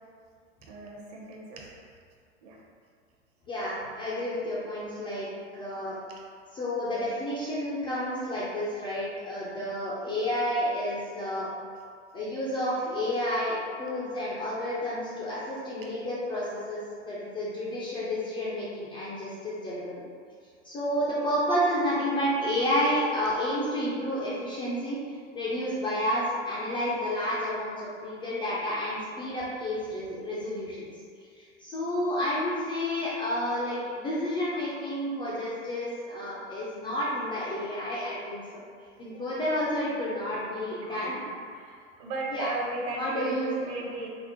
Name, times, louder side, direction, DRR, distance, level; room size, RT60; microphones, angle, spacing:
voice 1, 0.6-1.7 2.4-2.6 9.5-9.7 39.3-39.4 40.8-44.1, right 2 dB, 40° right, -1 dB, 0.7 m, -37 dB
voice 2, 3.5-5.3 5.5-6.0 6.5-11.5 12.1-20.0 20.6-30.9 31.2-38.6 39.0-41.2 42.3-42.5 43.0-43.5, equal, 15° left, -8 dB, 0.3 m, -30 dB
4.2 x 2.0 x 2.7 m, 2.1 s
hypercardioid pair, 95°, 36 cm